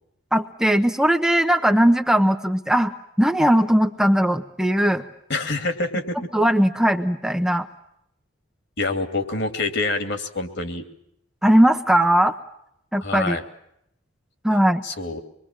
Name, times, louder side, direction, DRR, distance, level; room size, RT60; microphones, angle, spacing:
voice 1, 0.3-2.9 3.2-5.0 6.3-7.7 11.4-12.4 12.9-13.4 14.4-14.8, equal, 5° right, 5 dB, 0.9 m, -19 dB
voice 2, 5.3-6.2 8.8-10.8 13.0-13.4 14.8-15.2, left 3 dB, 55° left, 7 dB, 2.9 m, -26 dB
26.0 x 23.0 x 7.5 m, 0.76 s
head